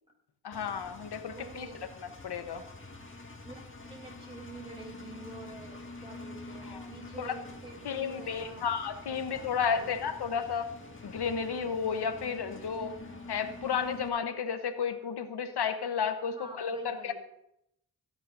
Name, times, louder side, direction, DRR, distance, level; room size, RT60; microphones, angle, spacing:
voice 1, 0.4-1.7 2.0-2.6 6.6-6.9 7.2-7.3 7.8-10.7 11.0-12.9 13.3-17.1, left 6 dB, 90° left, 8 dB, 1.1 m, -32 dB
Engine, 0.5-14.1, left 2 dB, 30° left, 1.7 m, -47 dB
voice 2, 1.2-1.9 3.4-8.6 9.1-9.9 16.3-17.1, right 2 dB, 15° right, 0 dB, 3.4 m, -48 dB
16.0 x 11.0 x 2.6 m, 0.80 s
wide cardioid pair, 75°, 39 cm